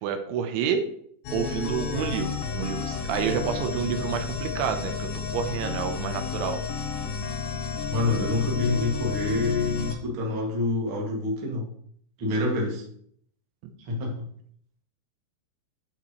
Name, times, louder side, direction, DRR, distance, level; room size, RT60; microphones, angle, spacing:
voice 1, 0.0-0.9 1.3-6.6 13.6-13.7, right 7 dB, 80° right, 7 dB, 3.2 m, -29 dB
sound 1, 1.2-9.9, left 6 dB, 80° left, 1.9 m, -32 dB
voice 2, 7.9-11.7 12.2-12.8 13.9-14.2, left 2 dB, 40° right, -2 dB, 2.0 m, -26 dB
11.5 x 7.3 x 3.1 m, 0.64 s
omnidirectional pair, 5.4 m